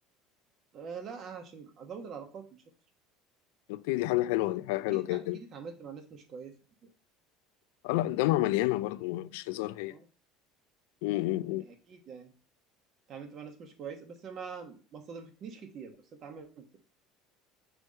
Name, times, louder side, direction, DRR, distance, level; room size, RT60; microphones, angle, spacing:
voice 1, 0.7-2.6 4.9-6.5 6.8-6.9 9.9-10.1 11.4-12.3 13.1-15.9 16.2-16.8, right 6 dB, 40° right, 1.3 m, -44 dB
voice 2, 3.7-5.4 7.8-9.9 11.0-11.6, left 17 dB, 85° left, 0.3 m, -29 dB
6.2 x 3.3 x 5.4 m
cardioid pair, 130°, 0 cm